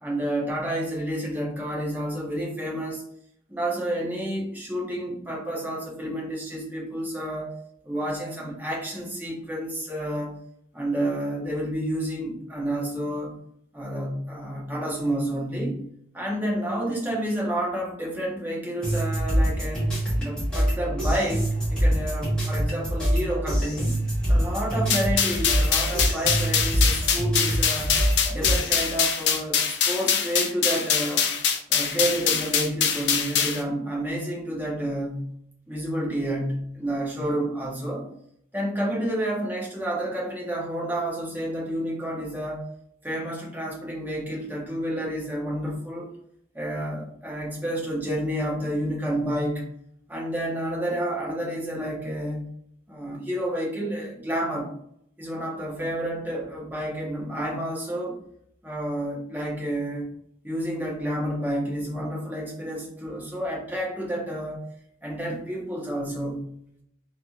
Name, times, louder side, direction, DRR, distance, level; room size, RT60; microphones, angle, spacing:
voice 1, 0.0-3.0 3.5-7.6 7.8-10.4 10.7-13.4 13.7-15.8 16.1-19.8 20.2-23.9 24.3-27.9 28.3-31.3 31.7-35.3 35.7-38.1 38.5-42.7 43.0-46.1 46.5-49.7 50.1-52.5 52.9-54.7 55.2-58.2 58.6-60.1 60.4-64.6 65.0-66.5, right 1 dB, 10° right, -3 dB, 0.8 m, -30 dB
sound 1, 18.8-28.7, equal, 5° left, 1.4 m, -25 dB
sound 2, 24.9-33.6, left 7 dB, 70° left, 0.5 m, -24 dB
3.3 x 2.8 x 2.4 m, 0.70 s
head